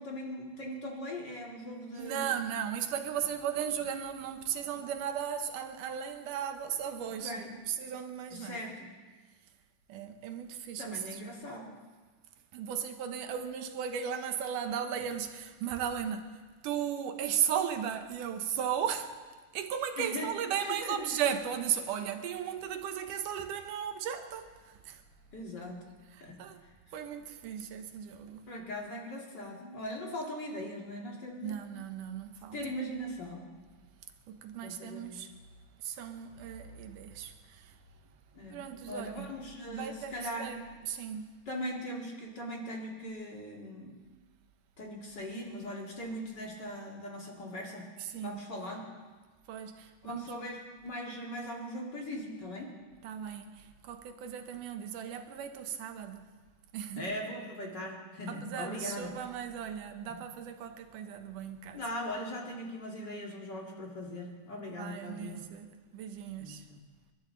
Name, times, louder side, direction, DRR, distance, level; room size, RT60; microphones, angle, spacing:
voice 1, 0.0-2.3 7.0-7.5 8.3-8.9 10.8-11.7 20.0-20.3 20.6-21.3 25.3-25.8 26.2-26.4 28.5-31.6 32.5-33.5 34.6-35.2 38.3-38.6 38.9-40.5 41.5-44.0 44.8-47.9 48.1-48.8 50.0-52.7 56.9-59.1 60.1-60.2 61.7-65.4 66.4-66.8, left 1 dB, 35° left, 2.7 m, -40 dB
voice 2, 2.0-8.6 9.9-11.4 12.5-19.3 19.5-25.0 26.1-26.6 26.9-28.5 31.4-32.6 34.3-35.3 35.8-37.8 38.5-39.3 39.7-41.4 48.0-48.4 49.5-50.3 53.0-56.3 56.7-57.1 58.3-61.8 64.8-66.6, right 8 dB, 75° right, 2.6 m, -36 dB
28.5 x 12.5 x 4.0 m
omnidirectional pair, 3.8 m